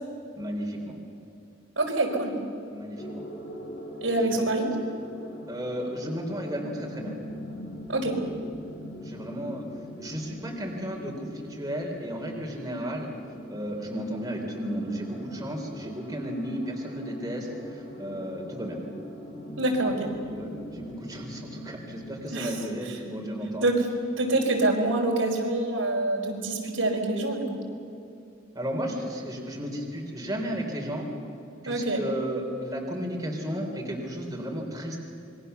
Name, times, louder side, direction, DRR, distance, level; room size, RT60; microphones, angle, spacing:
voice 1, 0.4-0.9 2.7-3.1 4.2-4.4 5.5-7.1 9.0-9.7 10.0-13.1 13.5-18.8 20.3-23.7 28.5-31.1 31.6-35.0, equal, 20° right, -1 dB, 3.9 m, -33 dB
voice 2, 1.7-2.3 4.0-4.7 7.9-8.2 19.6-19.9 22.3-22.6 22.8-23.0 23.6-23.9 24.2-27.4 31.6-32.0, right 2 dB, 80° right, 0 dB, 4.7 m, -25 dB
sound 1, 3.0-22.3, equal, 65° left, 6.0 m, -43 dB
27.0 x 22.5 x 7.0 m, 2.6 s
head